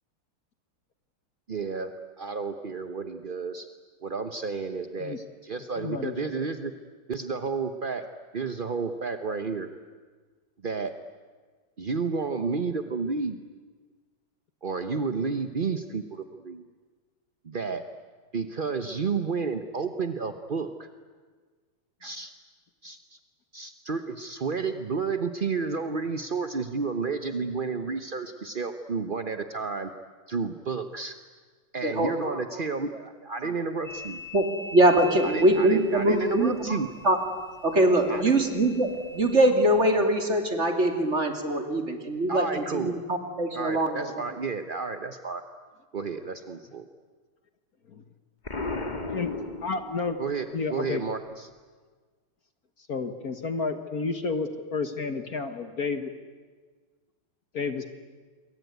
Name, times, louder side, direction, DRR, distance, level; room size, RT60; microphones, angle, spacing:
voice 1, 1.5-1.9 2.2-3.7 4.0-5.2 5.4-6.7 7.1-8.1 8.3-9.7 10.6-10.9 11.8-13.4 14.6-16.6 17.4-17.8 18.3-20.9 22.0-22.3 22.8-23.2 23.5-29.9 30.3-31.2 31.7-34.2 35.2-36.9 38.1-38.3 42.3-42.9 43.5-45.4 45.9-46.9 50.2-51.5, right 4 dB, 45° right, 8 dB, 0.6 m, -31 dB
voice 2, 5.8-6.4 49.1-49.3 49.6-50.2 50.5-51.0 52.9-56.1 57.5-57.9, left 4 dB, 45° left, 9 dB, 1.7 m, -31 dB
voice 3, 31.8-32.6 33.4-33.5 34.3-34.4 34.7-36.8 37.0-37.2 37.6-44.1, right 1 dB, 30° right, 5 dB, 2.9 m, -23 dB
sound 1, 33.8-39.4, left 1 dB, 90° left, 8.9 m, -43 dB
Explosion, 48.4-50.3, left 3 dB, 20° left, 1.8 m, -34 dB
27.5 x 23.0 x 9.5 m, 1.5 s
omnidirectional pair, 2.4 m